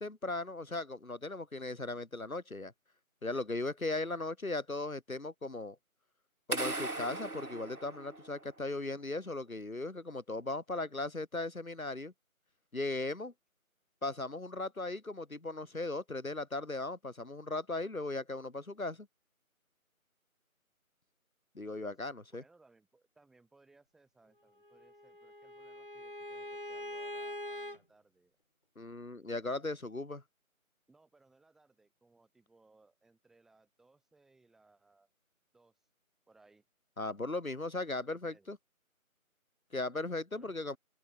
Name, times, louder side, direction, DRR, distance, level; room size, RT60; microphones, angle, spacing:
voice 1, 0.0-2.7 3.2-5.8 6.5-12.1 12.7-13.3 14.0-19.1 21.5-22.4 28.8-30.2 37.0-38.6 39.7-40.8, left 2 dB, 75° left, 5.9 m, -37 dB
sound 1, 6.5-8.6, right 2 dB, 90° right, 4.8 m, -38 dB
voice 2, 22.3-28.4 30.9-35.1 35.5-35.9 36.3-36.7 38.1-38.5 40.3-40.8, right 3 dB, ahead, 6.2 m, -66 dB
Bowed string instrument, 24.6-27.8, left 1 dB, 40° left, 0.7 m, -43 dB
figure-of-eight pair, 170°, 43 cm